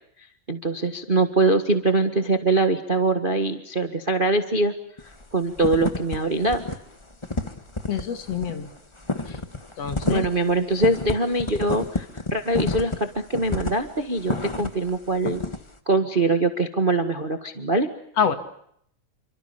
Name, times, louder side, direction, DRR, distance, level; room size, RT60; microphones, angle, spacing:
voice 1, 0.5-4.7 5.3-6.6 10.0-15.4 15.9-17.9, right 2 dB, 25° right, 7 dB, 1.2 m, -23 dB
sound 1, 5.0-5.2 5.5-6.2 6.4-6.7 7.0-14.9 15.2-15.6, left 2 dB, 30° left, 0.5 m, -29 dB
voice 2, 7.9-8.7 9.3-9.4 9.8-10.2 18.2-18.4, left 7 dB, 55° left, 8 dB, 3.1 m, -26 dB
29.5 x 25.5 x 6.9 m, 0.70 s
omnidirectional pair, 3.5 m